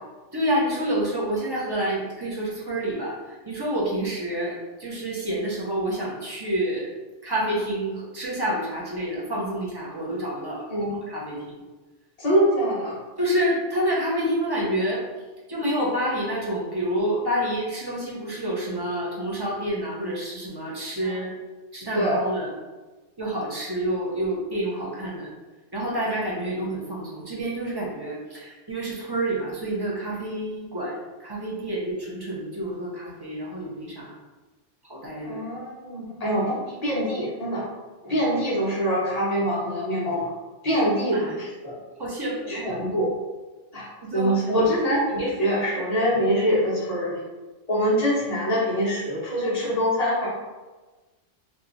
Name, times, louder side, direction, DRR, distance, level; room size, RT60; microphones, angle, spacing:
voice 1, 0.3-6.9 7.2-10.6 11.1-11.6 13.2-15.0 15.5-21.3 21.7-22.5 23.2-25.3 25.7-34.2 34.9-35.4 41.1-41.3 42.0-42.7 44.0-44.3, right 1 dB, 25° right, -5 dB, 0.6 m, -28 dB
voice 2, 12.2-13.0 21.0-21.1 21.9-22.2 35.2-37.6 38.0-40.2 40.6-41.8 42.5-43.1 43.7-43.9 44.1-47.2 47.7-50.3, equal, 35° left, -6 dB, 1.0 m, -24 dB
2.9 x 2.3 x 3.8 m, 1.2 s
omnidirectional pair, 1.3 m